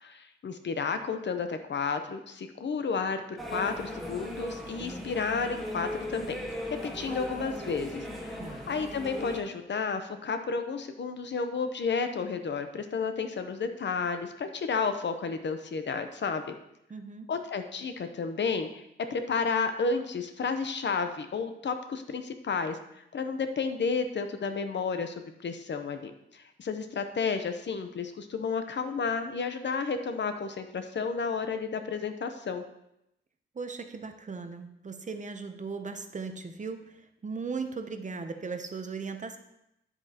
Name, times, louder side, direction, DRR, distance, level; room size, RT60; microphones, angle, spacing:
voice 1, 0.0-6.4 6.7-16.5 17.3-18.8 19.1-22.8 23.1-25.1 25.4-32.6, left 5 dB, 65° left, 8 dB, 0.8 m, -32 dB
sound 1, 3.4-9.4, equal, ahead, 1.5 m, -38 dB
voice 2, 16.9-17.3 33.5-39.4, right 4 dB, 40° right, 7 dB, 0.7 m, -38 dB
9.9 x 8.0 x 2.9 m, 0.82 s
wide cardioid pair, 165°, 20 cm